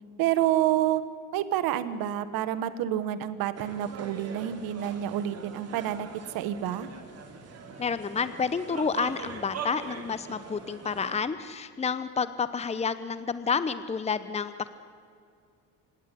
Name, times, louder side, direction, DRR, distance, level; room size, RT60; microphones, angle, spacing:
voice 1, 0.2-1.0 1.3-6.1 6.3-6.9, right 12 dB, 75° right, 13 dB, 1.4 m, -28 dB
sound 1, 3.5-11.1, right 5 dB, 45° right, 3.0 m, -42 dB
voice 2, 7.8-14.7, left 5 dB, 20° left, 13 dB, 0.9 m, -30 dB
26.0 x 11.0 x 10.0 m, 2.3 s
supercardioid pair, 95°, 35 cm